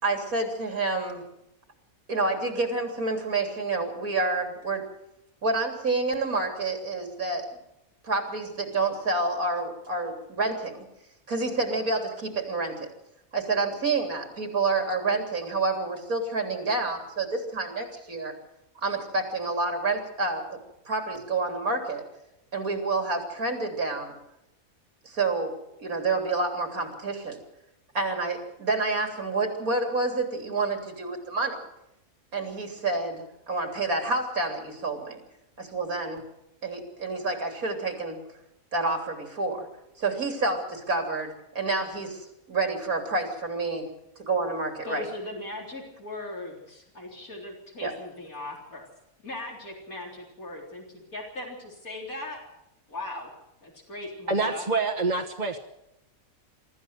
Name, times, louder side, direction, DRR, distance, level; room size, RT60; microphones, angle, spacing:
voice 1, 0.0-1.2 2.1-4.8 5.4-7.5 8.0-10.8 11.3-12.9 13.3-18.3 18.8-20.6 20.9-22.0 22.5-24.1 25.0-25.5 25.8-27.4 27.9-31.6 32.3-35.2 35.6-36.2 36.6-38.2 38.7-39.7 40.0-43.9 44.2-45.1 47.8-47.9, right 3 dB, 85° right, 4 dB, 3.9 m, -28 dB
voice 2, 44.8-48.9 49.2-52.4 52.9-53.3 53.6-54.6, left 2 dB, 80° left, -2 dB, 4.5 m, -39 dB
voice 3, 54.3-55.6, right 3 dB, 35° right, 1 dB, 1.3 m, -26 dB
24.0 x 14.0 x 7.9 m, 0.86 s
omnidirectional pair, 1.5 m